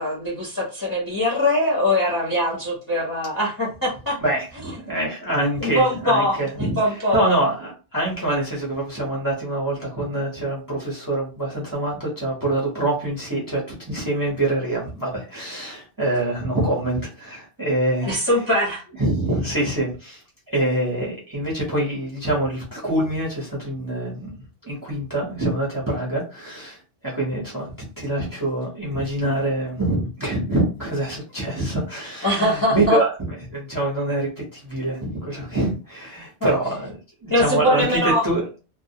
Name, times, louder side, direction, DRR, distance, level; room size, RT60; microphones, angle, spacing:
voice 1, 0.0-4.2 5.6-7.2 18.0-18.8 32.2-33.0 37.3-38.2, left 1 dB, 20° left, 0.6 m, -22 dB
voice 2, 4.2-6.8 7.1-18.1 19.0-20.2 20.5-24.3 24.6-26.8 27.0-33.1 33.5-36.9 37.2-38.5, right 1 dB, 20° right, 0.6 m, -25 dB
2.2 x 2.0 x 2.7 m
omnidirectional pair, 1.2 m